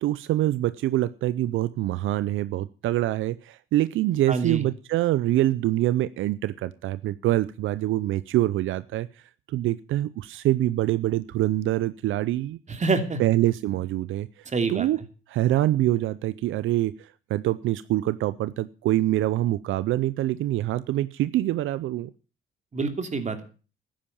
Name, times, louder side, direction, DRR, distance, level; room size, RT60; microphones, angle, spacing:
voice 1, 0.0-9.1 9.5-12.6 13.2-15.0 15.3-22.1, right 14 dB, 80° right, 15 dB, 0.6 m, -25 dB
voice 2, 4.3-4.7 12.7-13.2 14.5-14.9 22.7-23.4, right 4 dB, 35° right, 7 dB, 2.9 m, -26 dB
13.0 x 10.0 x 7.1 m, 0.37 s
cardioid pair, 90°, 20 cm